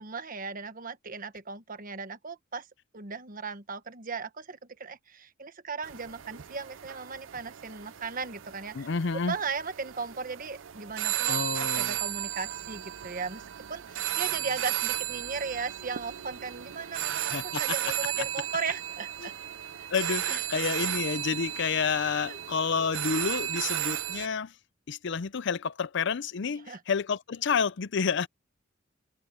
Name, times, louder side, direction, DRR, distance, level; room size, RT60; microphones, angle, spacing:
voice 1, 0.0-2.7 2.9-8.9 9.1-11.4 11.8-13.4 13.7-19.3 19.8-20.4 22.3-22.4 26.7-26.8, right 4 dB, 45° right, 1.4 m, -37 dB
sound 1, 5.8-24.3, right 12 dB, 90° right, 0.6 m, -34 dB
voice 2, 8.7-9.3 11.3-12.0 17.3-17.6 18.2-18.3 19.2-19.3 19.9-24.5 24.9-28.3, left 6 dB, 65° left, 0.5 m, -29 dB
open air
head